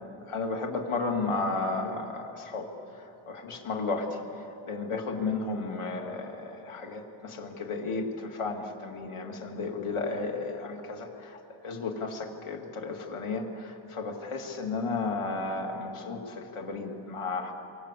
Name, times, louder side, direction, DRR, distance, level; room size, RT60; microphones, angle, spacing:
voice 1, 0.3-2.7 3.3-4.2 4.7-11.4 11.6-17.5, left 3 dB, 85° left, 2 dB, 2.8 m, -33 dB
27.5 x 24.5 x 8.4 m, 2.8 s
wide cardioid pair, 110°, 49 cm